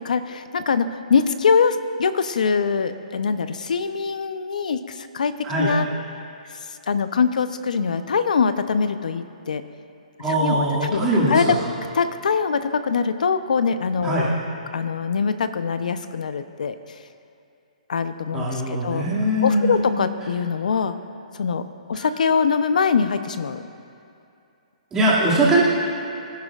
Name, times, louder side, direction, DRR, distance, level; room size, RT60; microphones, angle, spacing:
voice 1, 0.0-5.9 6.7-9.6 10.3-11.6 11.9-14.3 14.7-16.8 17.9-19.0 19.4-21.0 21.3-21.6 21.9-23.6, left 5 dB, 75° left, 11 dB, 0.7 m, -23 dB
voice 2, 10.2-11.6 14.0-14.3 18.3-19.8 21.9-22.0 24.9-25.6, right 1 dB, 15° right, -7 dB, 2.3 m, -21 dB
23.5 x 10.5 x 2.5 m, 2.6 s
hypercardioid pair, 155°, 4 cm